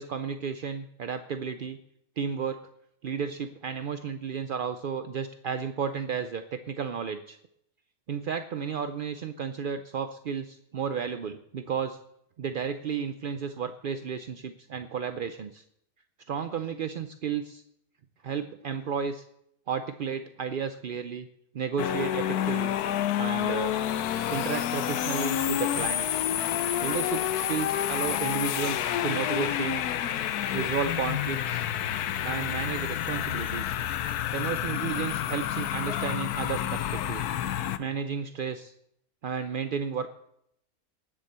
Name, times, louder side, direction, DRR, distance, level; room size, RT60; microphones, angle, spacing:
voice 1, 0.0-1.8 2.2-2.6 3.0-7.4 8.1-12.0 12.4-15.6 16.3-17.6 18.2-19.2 19.7-21.3 21.5-22.8 23.2-23.8 24.3-26.2 26.8-29.9 30.5-31.6 32.2-33.8 34.3-37.3 37.8-38.7 39.2-40.1, right 6 dB, 60° right, 9 dB, 0.5 m, -33 dB
sound 1, 21.8-37.8, left 11 dB, 90° left, 1.2 m, -29 dB
19.0 x 7.4 x 6.8 m, 0.75 s
omnidirectional pair, 1.6 m